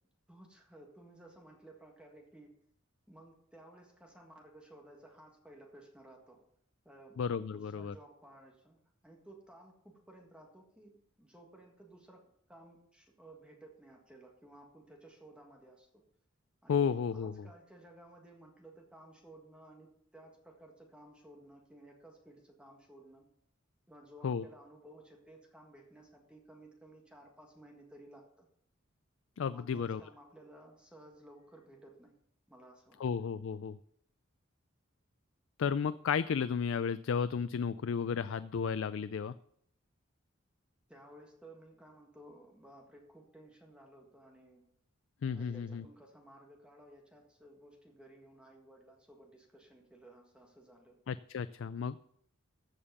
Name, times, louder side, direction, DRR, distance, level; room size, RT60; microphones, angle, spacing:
voice 1, 0.3-2.5 3.1-6.4 6.8-16.1 16.6-16.9 17.1-23.3 23.9-28.5 29.5-32.2 32.5-33.0 40.9-44.7 45.3-51.0, right 1 dB, 5° right, 1 dB, 1.7 m, -56 dB
voice 2, 7.2-7.9 16.7-17.3 24.2-24.4 29.4-30.0 33.0-33.8 35.6-39.3 45.2-45.8 51.1-52.0, left 6 dB, 70° left, 14 dB, 0.4 m, -33 dB
14.0 x 5.2 x 6.8 m, 0.69 s
head